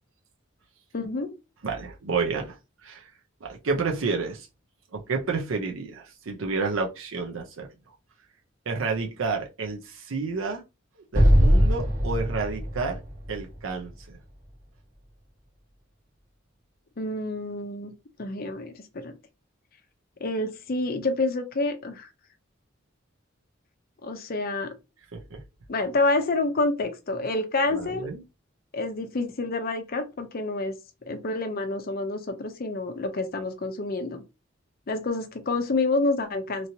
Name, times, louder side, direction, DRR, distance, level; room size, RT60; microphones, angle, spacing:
voice 1, 0.9-1.3 17.0-17.9 18.2-19.1 20.2-22.1 24.0-24.7 25.7-28.1 28.7-30.7 31.1-34.2 34.9-36.7, left 2 dB, 50° left, 0.6 m, -28 dB
voice 2, 1.6-2.5 2.8-3.0 3.4-4.5 4.9-7.7 8.7-10.6 11.0-13.0 13.3-14.2 25.1-25.4 27.7-28.2, right 4 dB, 85° right, 0.6 m, -30 dB
Explosion, 11.1-14.4, equal, 45° right, 1.4 m, -22 dB
3.0 x 2.7 x 2.8 m
head